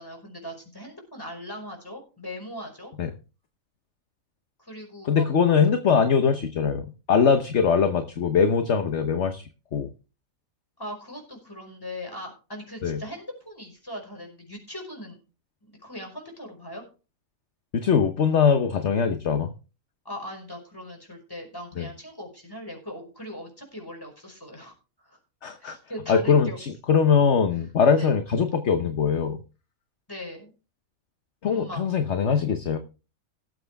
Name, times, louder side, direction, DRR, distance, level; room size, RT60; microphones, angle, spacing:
voice 1, 0.0-2.9 4.6-5.3 10.8-15.2 15.6-16.8 20.1-24.7 25.0-25.2 25.6-26.6 28.0-28.1 30.1-30.5 31.4-31.8, left 1 dB, 15° left, 2 dB, 5.2 m, -39 dB
voice 2, 5.0-9.4 9.7-9.9 12.8-13.0 17.7-19.5 21.8-21.9 25.4-25.8 26.1-29.4 31.4-32.8, left 6 dB, 55° left, 7 dB, 1.2 m, -22 dB
18.5 x 7.8 x 3.5 m, 0.33 s
omnidirectional pair, 1.5 m